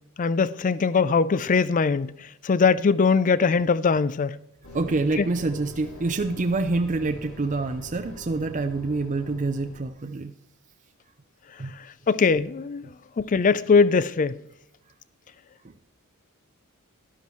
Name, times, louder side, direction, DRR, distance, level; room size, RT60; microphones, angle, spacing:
voice 1, 0.2-2.1 2.4-4.4 5.2-5.3 12.1-12.9 13.2-14.4, left 5 dB, 35° left, 0.4 m, -21 dB
sound 1, 4.6-9.8, left 2 dB, 75° left, 2.8 m, -43 dB
voice 2, 4.7-10.3 11.6-11.8 15.6-15.7, right 3 dB, 35° right, 0.5 m, -27 dB
12.0 x 11.5 x 3.2 m
head